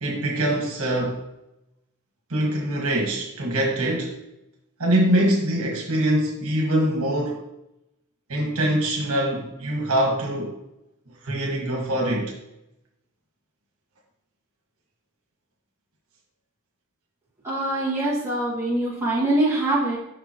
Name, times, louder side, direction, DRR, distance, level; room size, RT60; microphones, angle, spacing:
voice 1, 0.0-1.3 2.3-4.2 4.8-7.4 8.3-10.5 11.2-12.3, right 1 dB, 80° right, -1 dB, 1.5 m, -23 dB
voice 2, 17.4-20.0, right 1 dB, 10° right, -7 dB, 2.0 m, -23 dB
6.7 x 5.4 x 3.0 m, 0.87 s
head